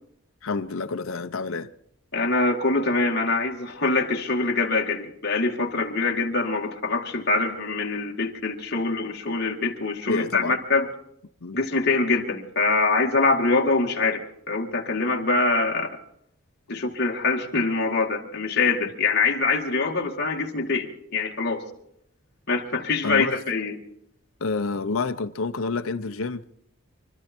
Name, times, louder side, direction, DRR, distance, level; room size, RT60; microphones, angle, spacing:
voice 1, 0.4-1.7 10.1-10.6 11.4-11.6 23.0-23.3 24.4-26.5, left 4 dB, 75° left, 0.7 m, -28 dB
voice 2, 2.1-10.9 11.5-14.2 14.5-15.9 16.7-21.6 22.5-23.8, left 3 dB, 50° left, 2.0 m, -24 dB
24.5 x 12.5 x 4.5 m
head